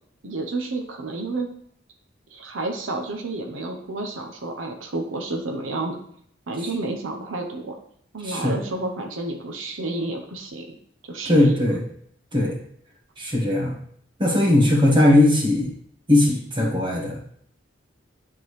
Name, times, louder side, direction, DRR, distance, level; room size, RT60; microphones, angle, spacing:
voice 1, 0.2-1.5 2.3-6.0 6.5-7.7 8.1-10.8 11.0-11.6, right 2 dB, 85° right, 3 dB, 0.9 m, -30 dB
voice 2, 8.2-8.6 11.2-11.8 12.3-12.6 13.2-13.7 14.2-15.7 16.1-17.2, left 1 dB, 25° right, -1 dB, 1.5 m, -19 dB
10.5 x 3.8 x 3.2 m, 0.66 s
head